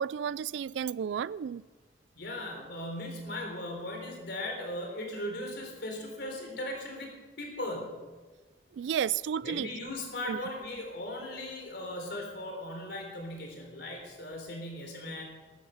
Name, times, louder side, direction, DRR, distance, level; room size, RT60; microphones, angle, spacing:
voice 1, 0.0-1.6 8.8-9.7 10.3-10.4, right 8 dB, 70° right, 0.3 m, -32 dB
voice 2, 2.2-8.1 9.4-15.2, left 1 dB, 65° left, 3.8 m, -38 dB
13.0 x 12.5 x 5.7 m
head